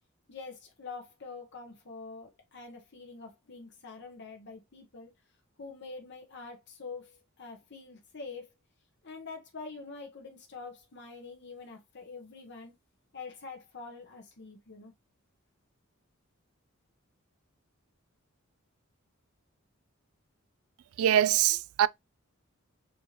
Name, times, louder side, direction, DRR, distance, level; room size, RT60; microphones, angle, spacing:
voice 1, 0.3-5.1 5.6-8.5 9.0-12.7 13.1-14.9, left 4 dB, 55° left, 1.0 m, -45 dB
voice 2, 21.0-21.9, right 11 dB, 75° right, 0.3 m, -23 dB
4.3 x 3.1 x 2.9 m
head